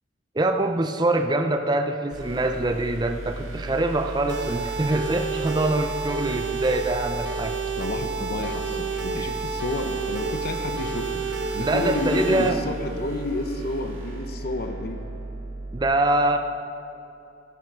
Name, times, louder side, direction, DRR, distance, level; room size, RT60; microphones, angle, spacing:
voice 1, 0.3-7.6 9.1-9.3 11.6-12.6 15.7-16.4, right 2 dB, 20° right, 7 dB, 0.5 m, -24 dB
sound 1, 2.1-15.8, right 2 dB, 85° right, 1.8 m, -36 dB
sound 2, 4.3-12.5, right 4 dB, 60° right, 1.2 m, -30 dB
voice 2, 7.8-11.2 11.5-15.1, left 2 dB, 50° left, 6 dB, 0.9 m, -30 dB
14.5 x 10.5 x 4.8 m, 2.8 s
head